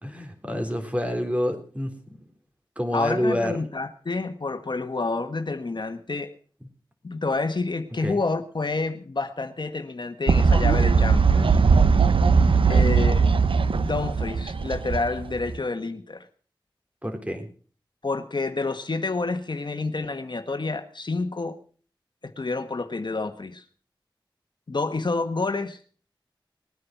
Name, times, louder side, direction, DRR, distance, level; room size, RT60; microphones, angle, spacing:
voice 1, 0.0-2.2 2.8-3.6 8.0-8.2 12.6-12.9 17.0-17.5, left 1 dB, 15° right, 5 dB, 3.8 m, -28 dB
voice 2, 2.9-6.3 7.0-11.6 12.6-13.2 13.7-16.3 18.0-21.6 22.2-23.6 24.7-25.8, left 3 dB, 60° left, 8 dB, 1.3 m, -29 dB
Fowl, 10.3-15.5, right 5 dB, 85° right, 0.7 m, -19 dB
20.0 x 9.6 x 5.9 m, 0.42 s
wide cardioid pair, 50°, 9 cm